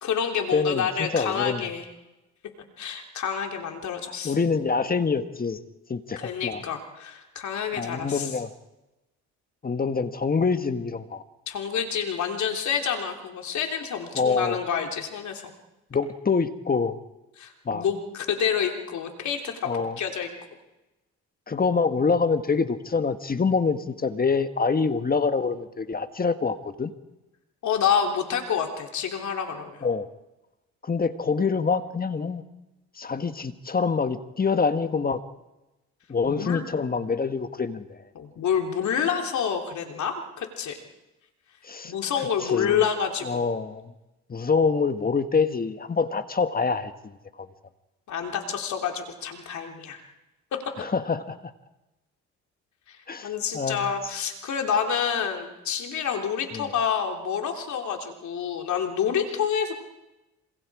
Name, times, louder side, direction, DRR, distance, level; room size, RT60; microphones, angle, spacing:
voice 1, 0.0-1.8 2.8-4.3 6.2-8.3 11.5-15.5 17.4-19.7 20.0-20.3 27.6-29.8 36.3-36.6 38.2-40.8 41.8-43.5 48.1-50.0 52.9-59.7, left 7 dB, 70° left, 3 dB, 3.4 m, -28 dB
voice 2, 0.5-1.7 4.2-5.6 5.9-6.6 7.7-8.5 9.6-11.2 14.1-14.6 15.9-17.0 17.6-17.8 19.6-20.0 21.5-26.9 29.8-30.1 30.8-32.4 33.0-35.2 36.1-38.0 41.6-42.8 43.2-43.9 44.3-47.5 50.8-51.4 53.1-53.9 56.5-56.7, left 5 dB, 30° left, 10 dB, 1.5 m, -26 dB
27.0 x 25.5 x 4.9 m, 1.0 s
cardioid pair, 90°, 30 cm